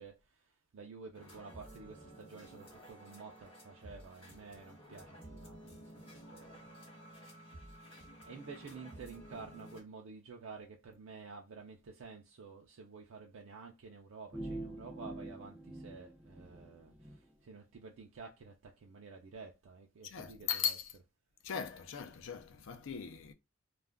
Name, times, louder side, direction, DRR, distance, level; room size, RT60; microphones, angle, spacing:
voice 1, 0.0-6.0 6.3-6.5 7.2-7.9 8.3-20.8, right 4 dB, 75° right, 0.4 m, -51 dB
sound 1, 1.1-9.8, right 1 dB, 30° left, 1.1 m, -53 dB
sound 2, 14.3-17.2, right 1 dB, 5° right, 0.3 m, -45 dB
voice 2, 20.1-20.8 21.4-23.3, left 8 dB, 70° left, 0.5 m, -38 dB
2.4 x 2.2 x 3.4 m
head